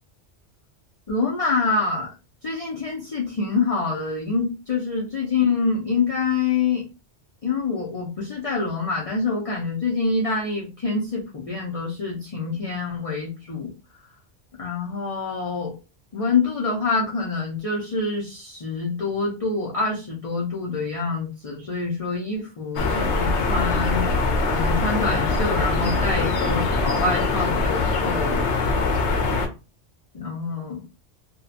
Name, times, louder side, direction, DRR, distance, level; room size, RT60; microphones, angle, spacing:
voice 1, 1.1-2.1 2.4-6.8 7.4-13.7 14.6-15.7 16.1-24.1 24.5-28.6 30.1-30.8, left 4 dB, 40° left, -3 dB, 0.5 m, -26 dB
sound 1, 22.8-29.5, left 3 dB, 75° left, 0.9 m, -23 dB
2.7 x 2.2 x 2.5 m, 0.29 s
omnidirectional pair, 1.2 m